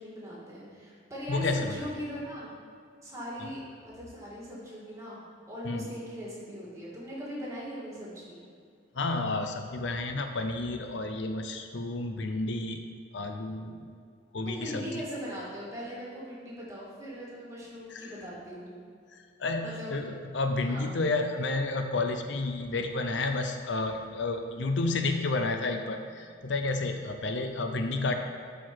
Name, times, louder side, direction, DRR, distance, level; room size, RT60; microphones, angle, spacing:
voice 1, 0.0-2.5 3.0-5.2 5.5-8.4 14.5-18.7 19.6-20.0 20.6-20.9, equal, 15° right, -6 dB, 2.2 m, -40 dB
voice 2, 1.3-1.8 3.4-3.5 5.6-5.9 9.0-12.8 13.1-13.9 14.3-14.9 17.9-18.1 19.4-28.1, left 3 dB, 70° left, 6 dB, 0.6 m, -31 dB
10.5 x 4.6 x 4.6 m, 2.2 s
head